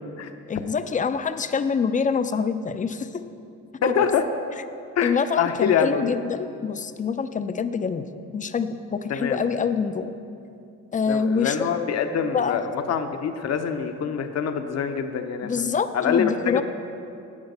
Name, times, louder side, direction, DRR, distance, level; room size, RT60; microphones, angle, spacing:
voice 1, 0.5-3.1 3.8-4.1 5.0-8.1 8.3-10.1 10.9-11.7 12.3-12.6 15.4-16.6, left 6 dB, 25° left, 11 dB, 0.5 m, -25 dB
voice 2, 3.8-4.2 5.0-6.1 9.1-9.4 11.1-16.6, left 7 dB, 60° left, 7 dB, 0.8 m, -25 dB
9.6 x 8.0 x 5.4 m, 2.6 s
cardioid pair, 90°, 30 cm